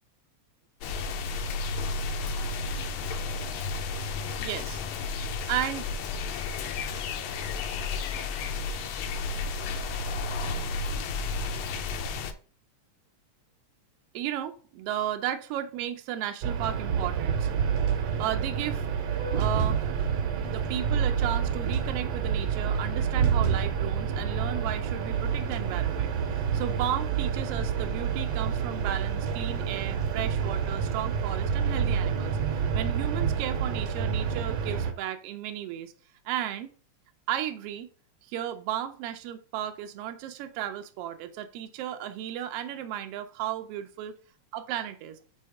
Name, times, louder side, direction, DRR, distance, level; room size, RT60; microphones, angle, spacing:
sound 1, 0.8-12.3, left 4 dB, 75° left, 1.6 m, -32 dB
voice 1, 4.4-4.8 5.5-5.9 14.1-17.5 18.2-18.9 19.4-19.8 20.5-35.9 36.2-36.7 37.3-37.9 38.2-44.1 44.5-45.1, right 11 dB, 85° right, 1.4 m, -34 dB
sound 2, 16.4-34.9, right 7 dB, 65° right, 1.7 m, -28 dB
Vehicle horn car horn honking, 16.8-32.2, right 4 dB, 5° right, 0.5 m, -43 dB
5.5 x 4.3 x 4.7 m
omnidirectional pair, 3.4 m